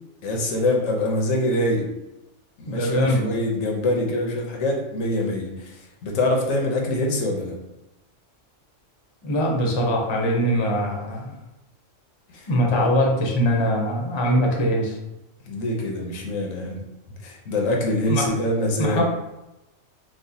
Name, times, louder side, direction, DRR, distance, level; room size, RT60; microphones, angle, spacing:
voice 1, 0.2-1.9 2.6-5.8 6.0-7.6 12.3-12.9 15.5-16.8 17.2-19.0, left 1 dB, 90° left, 0 dB, 1.1 m, -24 dB
voice 2, 2.7-3.3 9.2-11.4 12.5-15.0 18.1-18.3 18.8-19.0, equal, 35° left, -1 dB, 0.4 m, -22 dB
4.6 x 2.0 x 2.7 m, 0.94 s
omnidirectional pair, 1.3 m